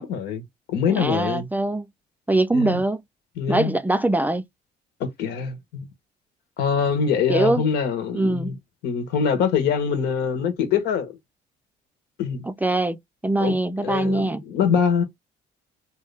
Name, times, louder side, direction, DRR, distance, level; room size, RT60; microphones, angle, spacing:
voice 1, 0.0-1.5 2.5-2.8 3.4-3.8 5.0-5.9 6.6-8.5 8.8-11.1 12.2-12.4 13.4-13.5 13.8-15.0, left 6 dB, 80° left, 1.4 m, -24 dB
voice 2, 0.9-1.9 2.3-3.0 3.5-4.4 7.3-7.6 8.1-8.5 12.5-13.0 13.2-14.4, right 2 dB, 10° right, 0.4 m, -22 dB
3.2 x 2.7 x 3.4 m
cardioid pair, 110°, 17 cm